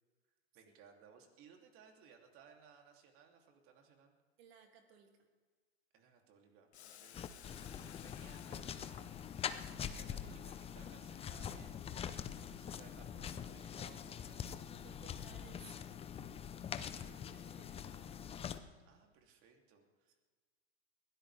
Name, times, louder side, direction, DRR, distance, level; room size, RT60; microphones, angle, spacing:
voice 1, 0.5-4.1 5.9-7.7 8.0-8.8 9.9-12.2 12.6-14.4 16.8-17.4 18.8-20.2, right 6 dB, 40° right, 2 dB, 3.0 m, -63 dB
voice 2, 4.4-5.1 6.8-8.4 9.8-10.2 14.8-16.1 16.8-18.0, right 7 dB, 65° right, 4 dB, 2.8 m, -63 dB
Boiling, 6.7-14.5, left 11 dB, 85° left, 0.9 m, -61 dB
sound 1, 7.1-18.6, left 8 dB, 20° left, 0.7 m, -44 dB
22.0 x 17.0 x 3.5 m, 1.5 s
hypercardioid pair, 115°, 32 cm